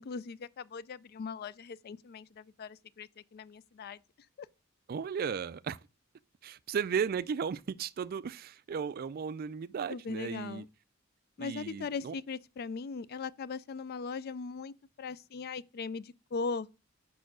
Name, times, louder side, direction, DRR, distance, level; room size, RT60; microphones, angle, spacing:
voice 1, 0.0-4.0 4.4-4.5 9.9-10.7 11.4-16.7, left 5 dB, 50° left, 0.3 m, -39 dB
voice 2, 4.9-5.8 6.4-10.6 11.4-12.1, right 6 dB, 45° right, 0.3 m, -35 dB
5.6 x 4.4 x 6.1 m
head